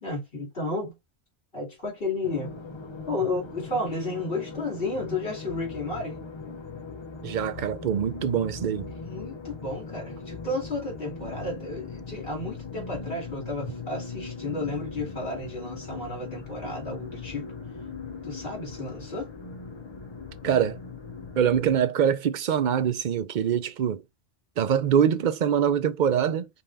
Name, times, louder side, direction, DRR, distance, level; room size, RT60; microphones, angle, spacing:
voice 1, 0.0-0.9 1.5-2.5 3.1-6.2 9.0-17.5 18.2-19.3, left 2 dB, 55° left, 3.1 m, -32 dB
sound 1, 2.2-21.8, left 4 dB, 30° left, 0.6 m, -39 dB
voice 2, 7.2-8.9 20.4-20.8 21.4-24.0 24.6-26.5, right 8 dB, 55° right, 0.6 m, -24 dB
5.5 x 2.7 x 3.4 m
omnidirectional pair, 1.1 m